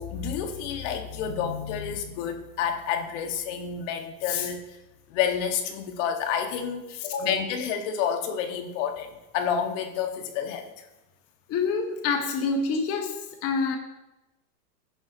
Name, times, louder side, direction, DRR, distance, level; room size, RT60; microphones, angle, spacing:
voice 1, 0.0-4.6 5.1-10.9, left 8 dB, 50° left, 5 dB, 2.0 m, -29 dB
voice 2, 7.0-7.4 11.5-13.1 13.4-13.8, left 4 dB, 30° left, 2 dB, 1.7 m, -27 dB
20.0 x 11.0 x 3.1 m, 0.98 s
hypercardioid pair, 130°, 47 cm